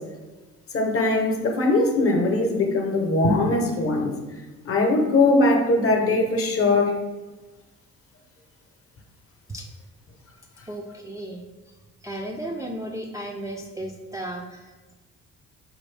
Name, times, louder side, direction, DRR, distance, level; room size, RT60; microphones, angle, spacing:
voice 1, 0.7-4.2 4.6-6.9, left 2 dB, 50° left, 2 dB, 0.8 m, -21 dB
voice 2, 10.7-11.8 12.0-14.9, right 1 dB, 10° right, 0 dB, 0.3 m, -35 dB
4.2 x 2.6 x 3.2 m, 1.2 s
cardioid pair, 90°, 30 cm